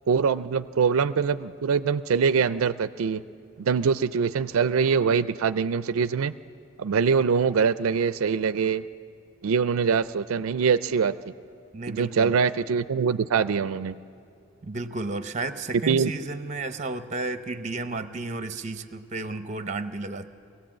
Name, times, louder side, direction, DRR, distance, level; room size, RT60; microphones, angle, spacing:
voice 1, 0.1-3.2 3.6-6.3 6.8-8.9 9.4-11.1 11.9-14.0 15.9-16.1, right 6 dB, 85° right, 14 dB, 0.4 m, -23 dB
voice 2, 11.7-12.4 14.6-20.3, right 3 dB, 35° right, 10 dB, 0.7 m, -32 dB
23.0 x 17.5 x 7.5 m, 2.5 s
head